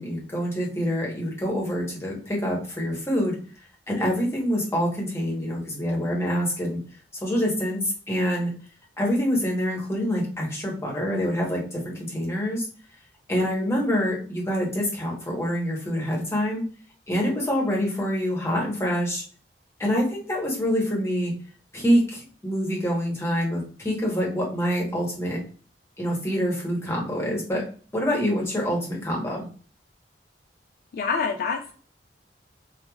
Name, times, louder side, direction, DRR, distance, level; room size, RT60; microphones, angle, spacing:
voice 1, 0.0-3.4 3.9-6.8 7.2-8.5 9.0-12.7 13.3-16.6 17.1-19.2 19.8-21.3 21.7-25.4 26.0-27.6 27.9-29.5, equal, 15° left, -3 dB, 0.9 m, -26 dB
voice 2, 30.9-31.7, left 5 dB, 55° left, 4 dB, 0.3 m, -26 dB
3.1 x 2.3 x 2.2 m, 0.39 s
head